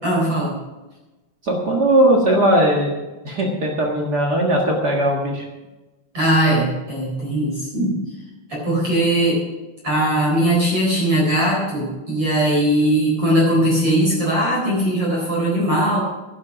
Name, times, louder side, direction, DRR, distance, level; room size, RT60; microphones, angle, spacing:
voice 1, 0.0-0.6 6.1-8.1 8.5-9.4 9.8-16.0, right 1 dB, 35° right, -4 dB, 4.9 m, -19 dB
voice 2, 1.4-2.9 3.2-5.5, right 1 dB, 80° right, 0 dB, 0.9 m, -18 dB
13.5 x 12.0 x 5.0 m, 1.1 s
omnidirectional pair, 4.8 m